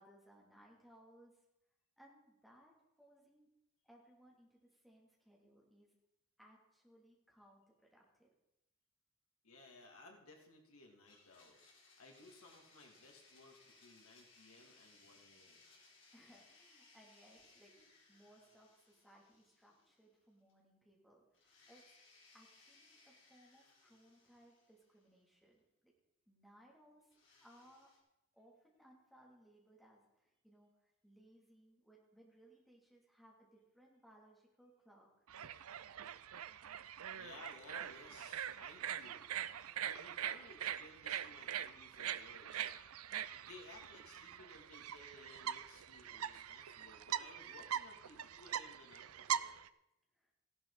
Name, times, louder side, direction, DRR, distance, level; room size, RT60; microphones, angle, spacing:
voice 1, 0.0-1.4 2.0-3.5 3.8-6.0 6.4-8.3 16.1-21.8 22.3-25.9 26.3-27.1 27.4-27.9 28.3-35.3 50.1-50.3, equal, ahead, -3 dB, 2.9 m, -65 dB
voice 2, 9.4-11.6 12.0-15.7 17.8-17.9 37.1-39.3 39.8-42.7 43.3-49.6, left 2 dB, 85° left, 1 dB, 2.8 m, -59 dB
Domestic sounds home sounds, 11.1-20.2 20.5-20.6 21.3-25.3 27.1-28.0, left 3 dB, 55° left, 4.6 m, -66 dB
sound 1, 35.3-49.7, right 10 dB, 85° right, 0.5 m, -43 dB
16.0 x 11.5 x 4.2 m, 0.88 s
head